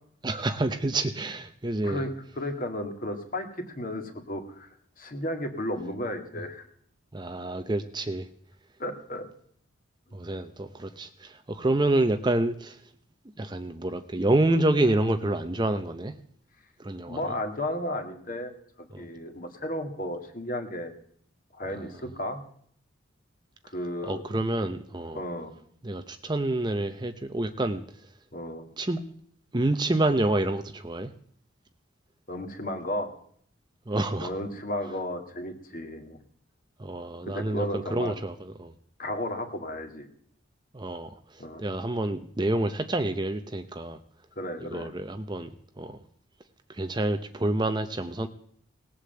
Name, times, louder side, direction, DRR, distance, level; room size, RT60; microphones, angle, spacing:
voice 1, 0.2-2.0 7.1-8.3 10.1-12.8 13.4-16.1 16.8-17.3 18.9-19.1 24.0-25.2 25.8-27.8 28.8-29.0 29.5-31.1 33.9-34.3 36.8-38.7 40.7-44.0 44.6-46.0 46.7-48.3, right 2 dB, 20° right, 9 dB, 0.6 m, -28 dB
voice 2, 2.4-6.6 8.8-9.2 17.1-18.5 18.8-20.9 21.5-22.4 23.7-24.2 25.1-25.5 28.3-28.7 32.3-33.1 34.2-36.2 37.3-38.2 39.0-40.1 41.4-41.6 44.4-44.9, left 1 dB, 40° left, 5 dB, 2.1 m, -33 dB
18.5 x 8.2 x 7.8 m, 0.63 s
head